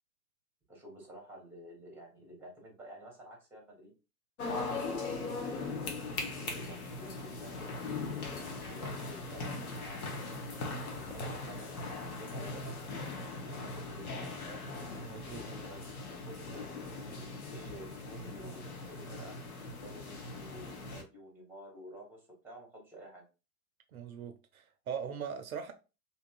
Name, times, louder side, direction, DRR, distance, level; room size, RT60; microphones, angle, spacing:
voice 1, 0.7-3.9 4.5-7.7 8.3-10.2 10.8-12.8 13.4-14.7 15.4-19.3 19.8-23.2, right 1 dB, 5° right, 0.9 m, -51 dB
sound 1, 4.4-21.0, left 3 dB, 70° left, 0.8 m, -40 dB
sound 2, 6.6-13.2, left 3 dB, 55° left, 1.2 m, -59 dB
voice 2, 10.7-11.2 15.1-15.4 23.9-25.7, right 7 dB, 65° right, 0.5 m, -41 dB
2.7 x 2.4 x 2.2 m
figure-of-eight pair, 95°, 46 cm